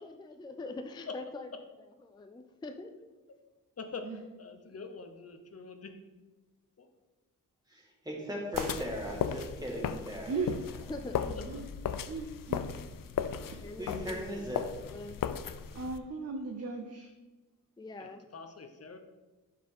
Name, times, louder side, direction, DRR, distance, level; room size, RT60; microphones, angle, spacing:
voice 1, 0.0-1.5 2.0-2.9 4.7-4.8 10.9-11.2 13.6-14.2 14.5-15.2 17.8-18.2, left 2 dB, 15° left, 7 dB, 0.3 m, -43 dB
voice 2, 3.8-4.1 4.4-6.0 6.8-6.9 11.3-11.7 18.0-19.0, left 4 dB, 50° left, 6 dB, 0.8 m, -44 dB
voice 3, 7.7-10.3 13.8-14.6, equal, 10° right, -3 dB, 1.8 m, -38 dB
sound 1, 8.5-16.0, left 8 dB, 80° left, 0.5 m, -36 dB
sound 2, 8.5-9.6, right 3 dB, 80° right, 1.6 m, -48 dB
voice 4, 11.1-11.7 12.1-12.7 13.5-13.6 15.7-17.1, right 4 dB, 50° right, 3 dB, 0.7 m, -37 dB
11.0 x 4.7 x 3.6 m, 1.2 s
wide cardioid pair, 170°, 33 cm